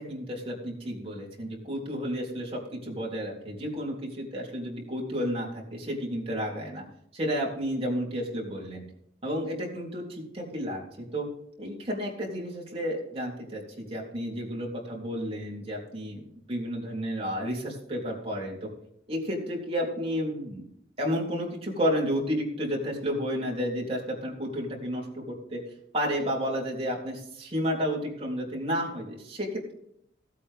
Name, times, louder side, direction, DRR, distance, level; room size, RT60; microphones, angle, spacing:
voice 1, 0.0-6.8 7.1-8.8 9.2-11.3 11.6-18.7 19.1-20.6 21.0-25.6 25.9-29.7, equal, 30° right, -2 dB, 3.5 m, -31 dB
16.5 x 8.4 x 3.6 m, 0.74 s
head